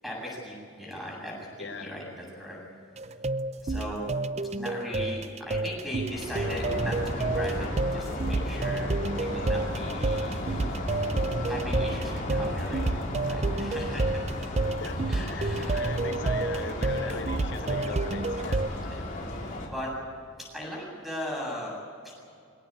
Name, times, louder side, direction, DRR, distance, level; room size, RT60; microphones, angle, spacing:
voice 1, 0.0-2.6 3.0-3.2 3.6-4.2 4.4-10.7 11.4-12.8 13.3-14.2 15.1-15.9 17.0-17.2 18.7-19.1 19.6-19.9 20.5-21.8 22.0-22.1, equal, ahead, -3 dB, 8.0 m, -38 dB
voice 2, 1.6-1.9 14.8-18.7, left 4 dB, 55° left, 9 dB, 0.8 m, -40 dB
Blip Blop Tuesday, 3.0-18.7, right 2 dB, 30° right, 0.5 m, -30 dB
sound 1, 6.0-19.7, left 1 dB, 40° left, 3.9 m, -34 dB
24.5 x 18.0 x 8.7 m, 2.4 s
head